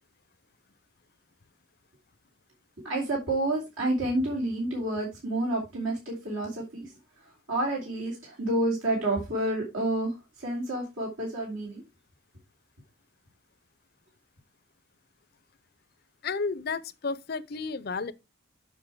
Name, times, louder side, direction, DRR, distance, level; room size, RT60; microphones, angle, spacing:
voice 1, 2.8-6.9 7.5-11.8, right 1 dB, 70° right, 2.8 m, -29 dB
voice 2, 16.2-18.1, left 4 dB, 50° left, 0.5 m, -32 dB
7.2 x 5.7 x 4.6 m
head